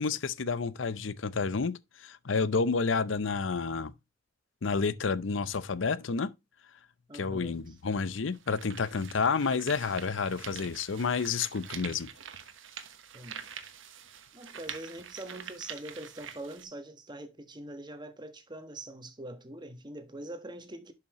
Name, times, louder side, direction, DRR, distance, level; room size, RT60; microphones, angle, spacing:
voice 1, 0.0-3.9 4.6-6.3 7.1-12.1, left 5 dB, 75° left, 0.6 m, -30 dB
voice 2, 7.1-7.7 13.1-13.5 14.3-20.9, right 1 dB, 25° right, 1.2 m, -43 dB
sound 1, 7.4-7.5 8.2-16.6, right 8 dB, 85° right, 1.2 m, -45 dB
11.5 x 5.7 x 3.0 m
head